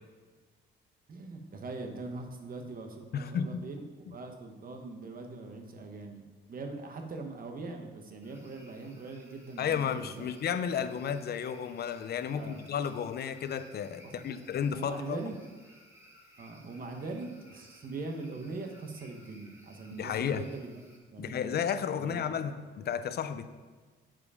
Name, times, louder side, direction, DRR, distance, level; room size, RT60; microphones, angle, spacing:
voice 1, 1.1-6.2 6.5-10.3 10.7-10.9 12.3-12.6 14.0-14.4 14.7-15.3 16.4-20.8 21.1-21.6 22.0-22.5, right 3 dB, 45° right, 4 dB, 1.2 m, -42 dB
voice 2, 3.1-3.6 9.6-15.2 20.0-20.4 21.2-23.4, left 8 dB, 55° left, 11 dB, 0.6 m, -33 dB
sound 1, 8.2-21.0, equal, 15° right, 1.9 m, -59 dB
7.4 x 4.9 x 4.9 m, 1.4 s
cardioid pair, 90°, 20 cm